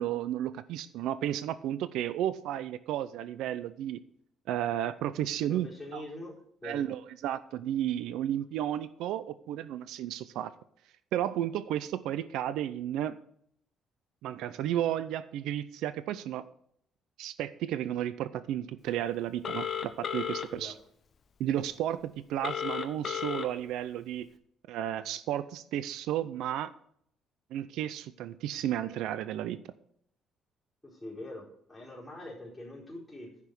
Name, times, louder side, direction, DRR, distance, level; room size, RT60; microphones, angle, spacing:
voice 1, 0.0-4.0 4.5-5.7 5.9-6.0 6.6-10.5 11.1-13.2 14.2-16.5 17.2-20.7 21.4-24.3 24.7-26.7 27.5-29.6, right 11 dB, 80° right, 14 dB, 0.6 m, -33 dB
voice 2, 5.5-6.9 20.4-20.8 30.8-33.4, left 1 dB, 5° left, -5 dB, 4.2 m, -44 dB
Telephone, 19.4-20.5 22.4-23.4, left 8 dB, 35° left, 1.0 m, -33 dB
10.5 x 6.0 x 8.1 m, 0.67 s
cardioid pair, 165°, 0 cm